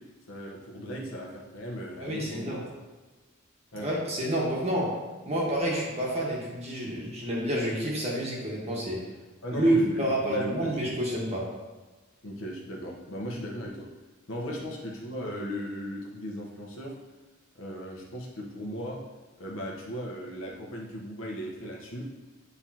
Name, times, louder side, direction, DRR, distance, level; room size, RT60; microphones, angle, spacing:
voice 1, 0.3-2.5 3.7-3.9 9.4-10.8 12.2-13.8 14.3-17.0 17.5-19.0 19.4-22.1, equal, 75° left, -2 dB, 1.1 m, -37 dB
voice 2, 2.0-2.6 3.8-4.9 5.2-9.0 9.5-11.4 13.3-13.4, right 1 dB, 30° right, -4 dB, 1.4 m, -28 dB
9.5 x 3.5 x 2.9 m, 1.2 s
head